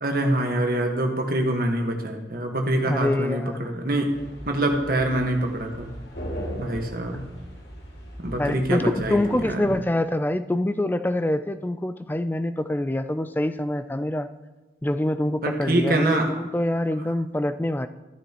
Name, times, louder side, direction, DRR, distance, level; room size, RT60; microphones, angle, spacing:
voice 1, 0.0-4.1 4.5-5.9 6.6-7.2 8.2-9.2 9.4-9.6 15.4-16.3, right 1 dB, 55° right, 2 dB, 1.4 m, -25 dB
voice 2, 2.8-3.7 8.4-14.3 14.8-17.9, left 1 dB, 10° left, 11 dB, 0.3 m, -25 dB
sound 1, 4.1-9.8, equal, 70° left, 2.3 m, -38 dB
14.0 x 10.0 x 3.0 m, 1.1 s
head